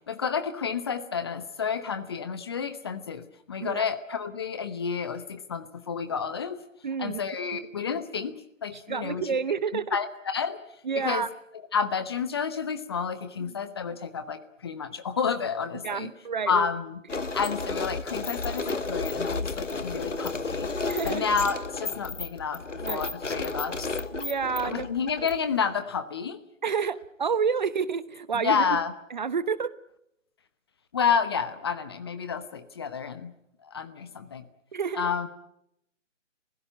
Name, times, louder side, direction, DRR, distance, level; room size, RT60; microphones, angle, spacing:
voice 1, 0.0-6.6 7.0-8.3 8.6-9.3 9.9-10.6 11.0-11.2 11.7-16.1 16.5-17.0 17.3-20.7 21.0-22.6 22.9-23.9 24.6-26.4 28.3-28.9 30.9-33.3 33.6-34.5 35.0-35.3, left 6 dB, 20° left, 11 dB, 0.9 m, -30 dB
voice 2, 6.8-7.2 8.9-10.0 10.8-11.3 13.5-13.6 15.8-16.7 17.1-17.2 20.9-21.3 22.8-23.5 24.1-24.9 26.6-28.6 29.1-29.7 34.7-35.1, right 6 dB, 35° right, 16 dB, 0.9 m, -29 dB
sound 1, 17.1-25.6, left 3 dB, 70° left, 2.1 m, -32 dB
30.0 x 16.0 x 8.9 m, 0.79 s
figure-of-eight pair, 150°, 38 cm